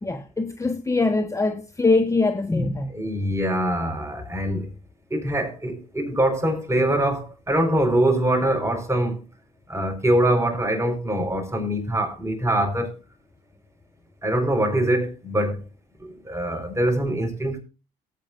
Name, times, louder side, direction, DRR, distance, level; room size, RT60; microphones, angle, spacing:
voice 1, 0.0-2.9, left 3 dB, 15° left, 1.3 m, -23 dB
voice 2, 2.9-4.7 5.1-9.2 9.7-12.9 14.2-15.6 16.0-17.6, right 1 dB, 15° right, 4.9 m, -23 dB
19.0 x 8.9 x 2.6 m
hypercardioid pair, 60°, 18 cm